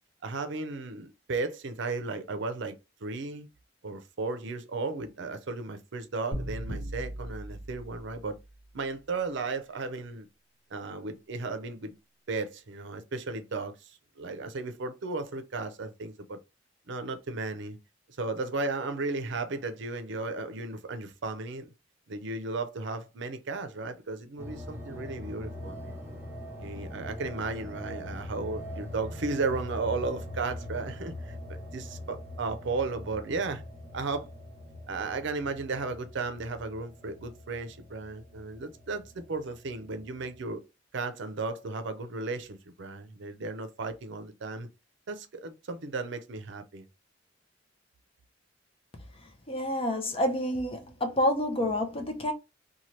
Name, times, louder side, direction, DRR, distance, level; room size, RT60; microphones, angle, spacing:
voice 1, 0.2-3.5 3.8-8.4 8.7-10.3 10.7-11.9 12.3-16.4 16.9-17.8 18.2-21.7 22.1-26.0 26.6-31.4 31.7-33.6 33.9-34.3 34.9-40.6 40.9-44.7 45.1-46.9, right 3 dB, 65° right, 0.6 m, -35 dB
sound 1, 6.3-8.5, right 1 dB, 65° left, 0.9 m, -38 dB
sound 2, 24.4-40.5, left 1 dB, 15° right, 0.9 m, -42 dB
voice 2, 49.5-52.3, left 1 dB, 30° left, 0.6 m, -28 dB
2.8 x 2.3 x 3.0 m
head